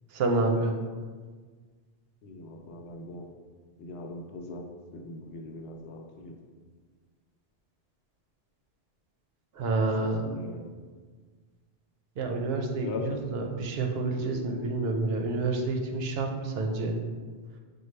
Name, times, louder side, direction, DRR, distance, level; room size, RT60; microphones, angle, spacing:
voice 1, 0.1-0.7 9.6-10.3 12.2-17.0, right 2 dB, 70° right, 2 dB, 0.8 m, -28 dB
voice 2, 2.2-3.2 3.8-4.6 4.9-6.3 10.2-10.6 12.8-13.1, left 3 dB, 85° left, 3 dB, 0.9 m, -40 dB
6.1 x 2.3 x 3.2 m, 1.5 s
omnidirectional pair, 1.1 m